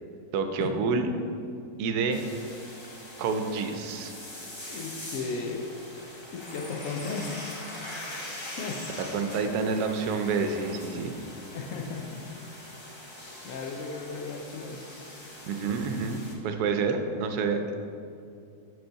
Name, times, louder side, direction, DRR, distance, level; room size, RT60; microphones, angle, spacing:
voice 1, 0.3-1.1 1.8-2.2 3.2-4.1 9.0-11.1 15.5-17.6, right 4 dB, 85° right, 7 dB, 1.1 m, -28 dB
sound 1, 2.1-16.3, left 1 dB, 25° left, 0.6 m, -42 dB
voice 2, 4.7-5.7 6.3-7.5 8.6-8.8 10.9-11.2 11.5-12.1 13.4-14.8, left 4 dB, 65° left, 2 dB, 0.9 m, -35 dB
5.3 x 3.8 x 5.6 m, 2.5 s
omnidirectional pair, 1.6 m